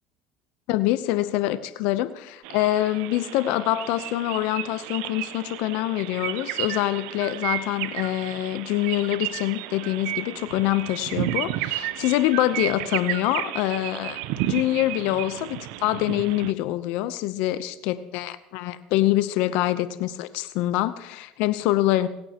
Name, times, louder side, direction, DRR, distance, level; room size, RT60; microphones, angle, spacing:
voice 1, 0.7-14.2 14.5-22.1, left 15 dB, 70° left, 14 dB, 0.7 m, -25 dB
sound 1, 2.4-16.5, right 15 dB, 75° right, 0.6 m, -32 dB
26.5 x 8.9 x 3.0 m, 0.89 s
supercardioid pair, 100°, 2 cm